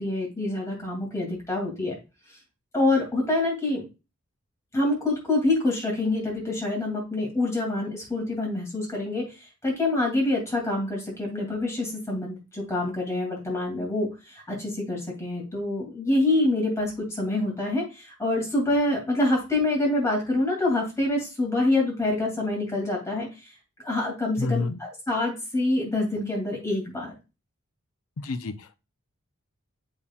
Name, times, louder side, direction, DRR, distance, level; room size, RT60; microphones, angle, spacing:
voice 1, 0.0-1.9 2.7-3.8 4.7-9.3 9.6-23.3 23.8-27.1, left 2 dB, 15° left, -1 dB, 2.6 m, -26 dB
voice 2, 24.4-24.8 28.2-28.8, left 3 dB, 75° left, 9 dB, 0.6 m, -29 dB
7.1 x 5.6 x 2.4 m, 0.28 s
head